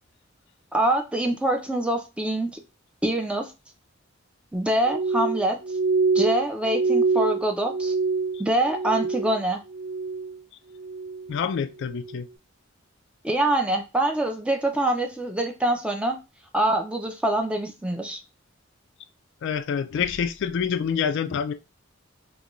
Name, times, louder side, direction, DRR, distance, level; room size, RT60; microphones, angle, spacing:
voice 1, 0.7-2.6 3.0-3.5 4.5-5.6 6.1-7.9 8.4-9.6 13.2-16.2 16.5-18.2, right 1 dB, 5° right, 0.5 m, -25 dB
Glass, 4.8-9.4 9.7-10.4 10.8-11.3 11.9-12.2, right 4 dB, 60° right, 0.4 m, -26 dB
voice 2, 11.3-12.3 19.4-21.5, left 7 dB, 60° left, 0.3 m, -27 dB
3.7 x 2.2 x 3.0 m
head